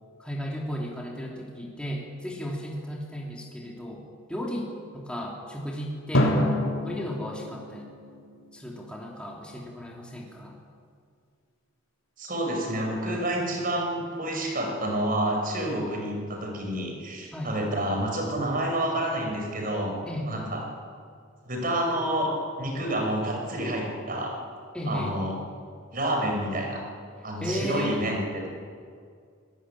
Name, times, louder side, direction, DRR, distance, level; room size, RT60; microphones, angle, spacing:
voice 1, 0.2-4.0 4.3-6.4 6.8-7.9 8.5-10.6 17.3-17.5 20.1-20.3 24.7-25.2 27.4-28.3, equal, 5° left, -2 dB, 3.1 m, -34 dB
Drum, 6.1-9.0, equal, 75° left, 3.9 m, -27 dB
voice 2, 12.2-20.0 20.2-20.6 21.5-22.3 22.6-24.3 24.9-25.4 25.9-26.8 27.2-28.5, right 1 dB, 40° right, 1 dB, 5.7 m, -28 dB
24.0 x 19.0 x 9.9 m, 2.2 s
head